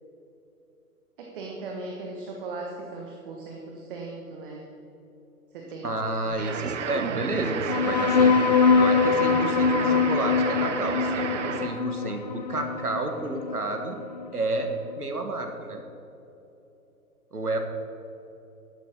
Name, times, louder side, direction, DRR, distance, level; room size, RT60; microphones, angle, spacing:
voice 1, 1.2-4.7 5.5-5.8 6.1-6.9 11.5-11.6, right 3 dB, 35° right, 0 dB, 1.5 m, -38 dB
voice 2, 5.8-8.4 8.7-11.3 11.6-14.0 14.3-15.8 17.3-17.6, right 2 dB, 80° right, 4 dB, 1.8 m, -30 dB
sound 1, 6.4-11.9, right 7 dB, 55° right, 0.7 m, -32 dB
sound 2, 7.7-14.6, left 5 dB, 30° left, 0.4 m, -23 dB
12.0 x 12.0 x 3.8 m, 3.0 s
figure-of-eight pair, 120°, 45 cm